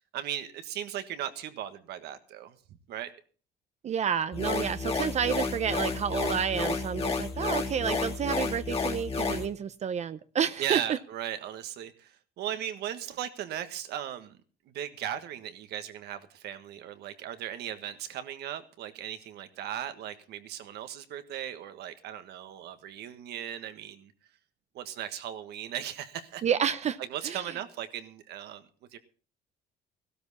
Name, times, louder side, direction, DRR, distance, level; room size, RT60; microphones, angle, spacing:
voice 1, 0.0-2.6 2.9-3.1 10.6-14.4 14.6-24.1 24.7-26.4 27.0-29.0, right 10 dB, 75° right, 9 dB, 1.5 m, -37 dB
voice 2, 3.8-10.8 26.4-27.0 27.3-27.4, right 8 dB, 40° right, 12 dB, 0.6 m, -30 dB
sound 1, 4.3-9.5, left 4 dB, 35° left, 2.5 m, -31 dB
15.5 x 12.5 x 4.2 m, 0.40 s
cardioid pair, 110°, 17 cm